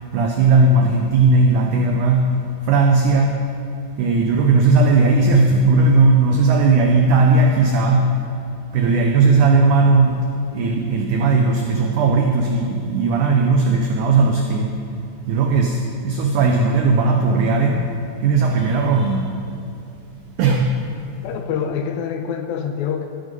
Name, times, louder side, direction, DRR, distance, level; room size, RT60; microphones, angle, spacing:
voice 1, 0.1-2.3 2.6-3.4 4.0-8.2 8.7-10.2 10.5-14.7 15.3-19.3 20.4-20.8, right 3 dB, 85° right, 2 dB, 1.8 m, -17 dB
voice 2, 21.2-23.1, left 7 dB, 80° left, 5 dB, 2.3 m, -26 dB
15.5 x 9.0 x 5.3 m, 2.5 s
omnidirectional pair, 4.6 m